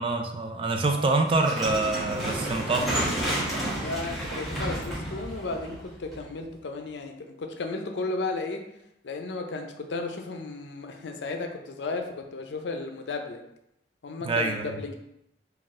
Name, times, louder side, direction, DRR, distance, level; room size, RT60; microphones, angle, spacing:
voice 1, 0.0-3.0 14.2-14.8, right 3 dB, 30° right, 4 dB, 0.4 m, -26 dB
sound 1, 1.3-6.4, right 1 dB, ahead, 1.4 m, -31 dB
voice 2, 3.7-8.6 9.0-13.4 14.0-15.0, left 3 dB, 75° left, 4 dB, 0.5 m, -34 dB
4.0 x 2.4 x 3.6 m, 0.80 s
head